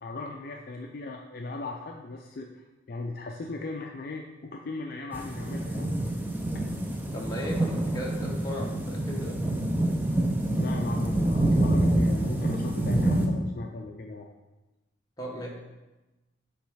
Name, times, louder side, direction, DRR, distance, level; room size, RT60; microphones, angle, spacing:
voice 1, 0.0-5.9 10.6-14.3, left 3 dB, 50° left, 1 dB, 0.4 m, -37 dB
sound 1, 5.1-13.3, right 1 dB, 10° right, 0.5 m, -27 dB
voice 2, 7.1-9.4 15.2-15.6, equal, 20° left, -3 dB, 1.0 m, -36 dB
7.4 x 3.1 x 4.7 m, 1.1 s
head